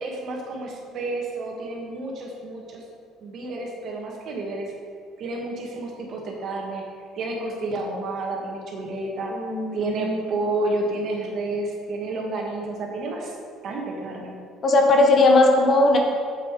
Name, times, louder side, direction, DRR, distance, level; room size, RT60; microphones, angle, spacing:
voice 1, 0.0-2.8 3.2-4.7 5.2-6.8 7.1-9.3 9.7-13.4 13.6-14.4, right 2 dB, 50° right, 0 dB, 1.9 m, -30 dB
voice 2, 9.3-10.3 14.6-16.0, left 2 dB, 40° left, 2 dB, 1.3 m, -18 dB
8.2 x 8.0 x 5.0 m, 2.2 s
cardioid pair, 130°, 0 cm